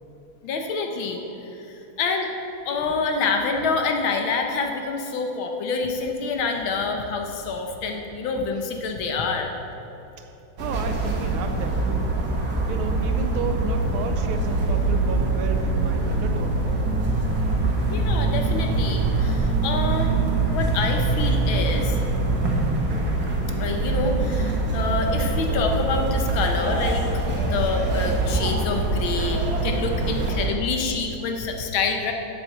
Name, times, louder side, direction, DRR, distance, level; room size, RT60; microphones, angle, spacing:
voice 1, 0.4-2.3 2.6-9.5 17.9-20.2 20.5-21.9 23.6-27.1 27.4-32.1, left 4 dB, 75° left, 3 dB, 1.7 m, -27 dB
sound 1, 10.6-30.5, right 2 dB, 50° right, 1.9 m, -24 dB
voice 2, 10.6-12.1 12.7-16.6 30.0-30.4, right 5 dB, 85° right, 6 dB, 1.5 m, -32 dB
7.7 x 7.5 x 7.7 m, 2.9 s
omnidirectional pair, 2.3 m